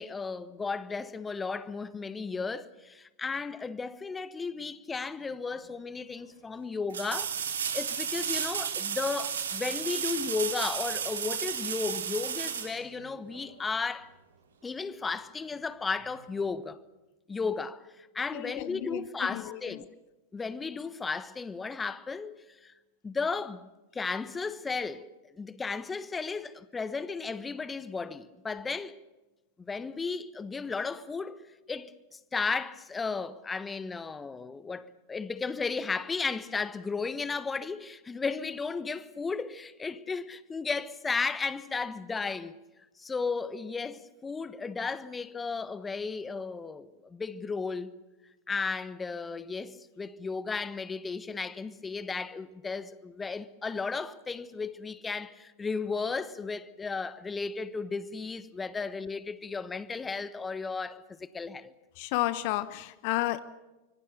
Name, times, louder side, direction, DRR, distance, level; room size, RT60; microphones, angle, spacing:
voice 1, 0.0-14.1 14.6-16.8 17.3-19.9 20.3-22.7 23.0-25.1 25.3-28.9 29.6-31.4 31.7-42.6 43.0-47.9 48.5-61.7, left 4 dB, 15° left, 1.2 m, -34 dB
sound 1, 5.5-5.6 6.9-13.5 16.4-16.5, right 7 dB, 65° right, 3.0 m, -33 dB
voice 2, 18.3-19.8 62.0-63.4, left 17 dB, 45° left, 1.0 m, -32 dB
25.5 x 24.5 x 6.8 m
figure-of-eight pair, 90°, 0 cm